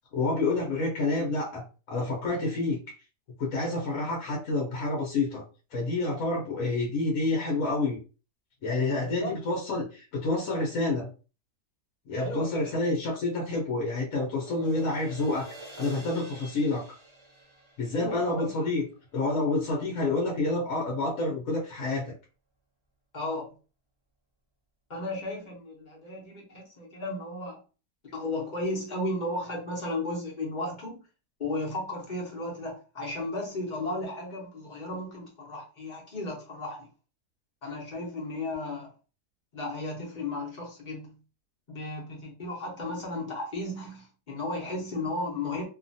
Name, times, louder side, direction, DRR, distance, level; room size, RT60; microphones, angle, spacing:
voice 1, 0.1-2.8 3.4-5.4 5.7-8.0 8.6-11.1 12.1-16.8 17.8-18.8 19.1-22.1, left 2 dB, 60° left, -3 dB, 1.1 m, -28 dB
voice 2, 12.2-12.7 17.9-18.7 23.1-23.5 24.9-27.6 28.1-31.0 31.4-36.9 37.6-38.9 39.5-41.2 41.7-45.6, left 2 dB, 35° left, -3 dB, 0.8 m, -34 dB
sound 1, 13.6-19.4, right 1 dB, 40° right, 0.4 m, -50 dB
2.7 x 2.4 x 2.6 m, 0.35 s
omnidirectional pair, 1.8 m